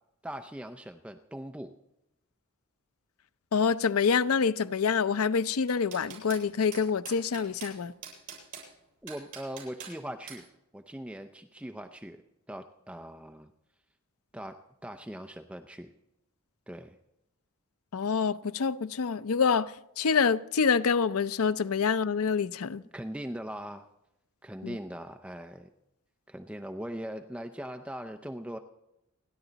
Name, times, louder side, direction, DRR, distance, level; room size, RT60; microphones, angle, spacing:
voice 1, 0.2-1.7 9.0-10.5 10.7-12.2 12.5-13.5 14.3-15.9 16.7-17.0 22.9-23.9 24.4-25.7 26.3-28.6, equal, 5° right, 0.5 m, -40 dB
voice 2, 3.5-7.9 17.9-22.8 24.6-24.8, left 5 dB, 75° left, 0.5 m, -26 dB
sound 1, 5.5-6.4 6.7-7.7 8.0-8.7 9.1-9.9 10.3-10.4, right 7 dB, 60° right, 7.3 m, -43 dB
29.5 x 11.0 x 4.0 m
head